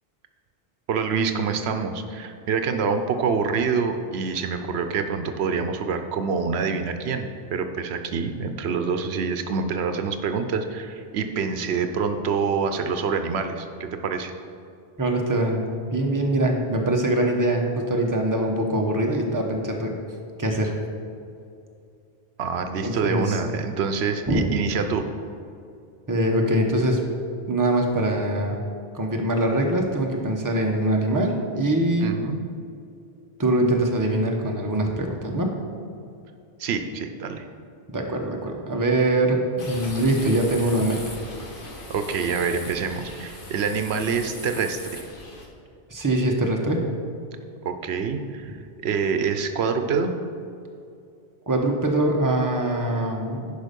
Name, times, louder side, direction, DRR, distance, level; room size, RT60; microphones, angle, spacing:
voice 1, 0.9-14.3 22.4-25.0 32.0-32.4 36.6-37.4 41.9-45.0 47.6-48.6 48.8-50.1, right 5 dB, 85° right, 7 dB, 0.9 m, -26 dB
voice 2, 15.0-19.9 20.4-20.8 22.8-23.4 24.3-24.4 26.1-27.1 27.5-28.6 28.9-32.1 33.4-35.5 37.9-41.2 45.9-46.8 51.5-53.5, right 1 dB, 20° right, 1 dB, 0.9 m, -23 dB
sound 1, 39.6-45.5, left 2 dB, 55° left, 1.4 m, -39 dB
10.5 x 5.2 x 5.2 m, 2.5 s
omnidirectional pair, 1.1 m